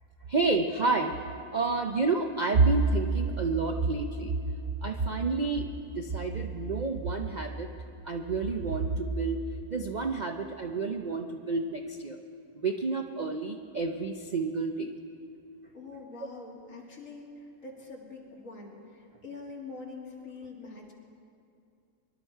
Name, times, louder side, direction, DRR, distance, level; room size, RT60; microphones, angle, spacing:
voice 1, 0.3-1.1 1.5-4.3 4.8-5.7 6.0-7.7 8.1-9.4 9.7-12.2 12.6-14.9, right 4 dB, 60° right, 3 dB, 0.4 m, -28 dB
voice 2, 15.7-17.3 17.6-20.9, left 3 dB, 55° left, -2 dB, 2.6 m, -44 dB
24.0 x 11.5 x 4.6 m, 2.5 s
omnidirectional pair, 1.6 m